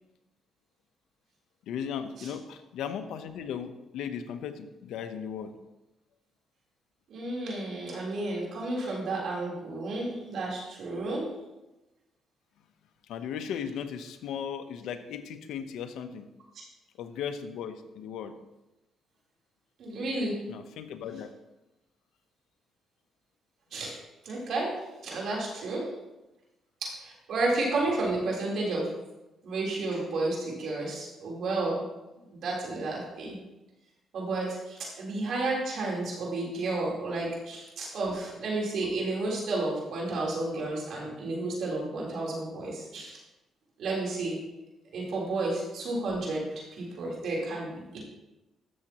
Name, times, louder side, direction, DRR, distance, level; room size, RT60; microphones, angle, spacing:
voice 1, 1.7-5.5 13.1-16.3 17.0-18.3 20.5-21.3, left 8 dB, 85° left, 8 dB, 0.8 m, -36 dB
voice 2, 7.1-11.3 16.6-16.7 19.8-20.4 23.7-24.0 24.2-25.9 26.8-28.9 29.4-31.8 32.3-33.4 34.1-43.2 43.8-44.4 44.9-48.0, right 2 dB, 70° right, -3 dB, 3.7 m, -32 dB
13.0 x 7.1 x 3.0 m, 1.0 s
cardioid pair, 90°, 0 cm